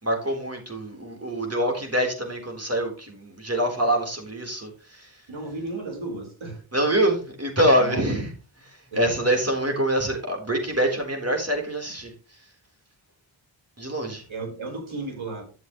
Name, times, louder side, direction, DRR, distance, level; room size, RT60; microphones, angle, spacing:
voice 1, 0.0-5.2 6.7-8.3 8.6-12.4 13.8-14.2, right 1 dB, 30° right, 2 dB, 4.1 m, -25 dB
voice 2, 5.3-6.6 7.8-8.1 8.9-9.1 14.3-15.4, right 3 dB, 70° right, 1 dB, 4.8 m, -34 dB
12.5 x 7.1 x 3.2 m, 0.35 s
cardioid pair, 60°, 49 cm